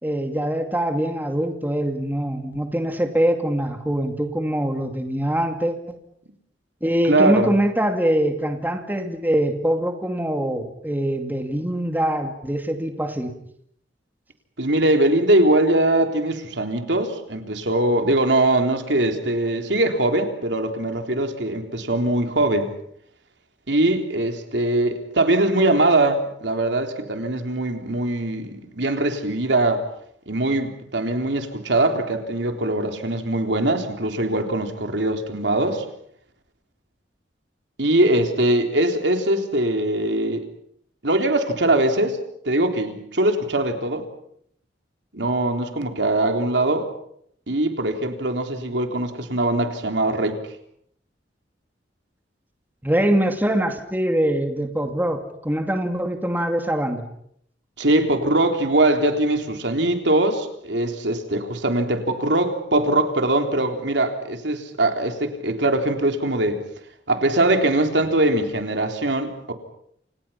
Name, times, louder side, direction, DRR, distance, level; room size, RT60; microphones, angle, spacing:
voice 1, 0.0-6.0 6.8-13.3 52.8-57.1, right 1 dB, 10° right, 5 dB, 2.4 m, -23 dB
voice 2, 7.0-7.5 14.6-22.7 23.7-29.8 30.3-35.9 37.8-40.5 41.0-42.2 42.5-44.0 45.1-46.9 47.5-50.4 57.8-66.6 67.1-69.5, right 1 dB, 70° right, 5 dB, 3.7 m, -21 dB
29.0 x 28.0 x 5.8 m, 0.69 s
head